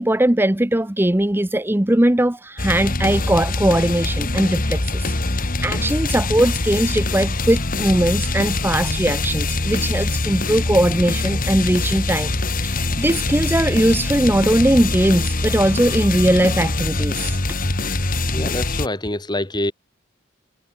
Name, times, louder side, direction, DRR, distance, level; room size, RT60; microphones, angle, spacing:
voice 1, 0.0-12.3 12.6-17.4, right 1 dB, 10° right, 0.8 m, -20 dB
sound 1, 2.6-18.9, left 2 dB, 45° left, 2.1 m, -23 dB
voice 2, 18.3-19.7, left 1 dB, 20° left, 2.3 m, -25 dB
head